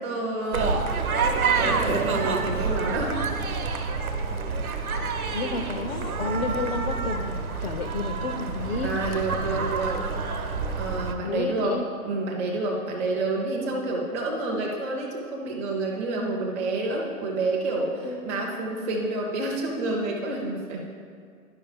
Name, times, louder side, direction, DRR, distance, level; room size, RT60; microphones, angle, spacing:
voice 1, 0.0-3.3 8.8-10.0 10.7-20.9, right 2 dB, 10° right, -2 dB, 0.5 m, -29 dB
sound 1, 0.5-11.1, right 4 dB, 70° right, 1.0 m, -28 dB
voice 2, 5.3-8.9 11.2-11.8 18.0-18.6, left 4 dB, 45° left, 6 dB, 0.5 m, -31 dB
11.5 x 5.3 x 3.4 m, 2.1 s
figure-of-eight pair, 130°, 44 cm